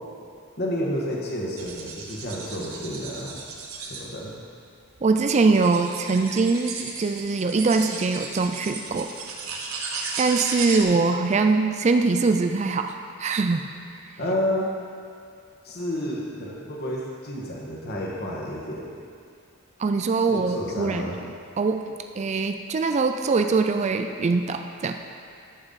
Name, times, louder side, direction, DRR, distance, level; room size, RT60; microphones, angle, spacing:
voice 1, 0.6-3.4 3.8-4.3 14.2-14.7 15.6-19.0 20.3-21.2, equal, 50° left, -3 dB, 1.6 m, -30 dB
sound 1, 1.6-4.0 4.9-5.0 5.5-10.8, right 4 dB, 80° right, 1.3 m, -35 dB
voice 2, 5.0-9.1 10.2-13.7 19.8-21.0 21.6-21.8 22.2-25.0, right 4 dB, 35° right, 5 dB, 0.4 m, -22 dB
11.0 x 8.2 x 4.0 m, 2.3 s
head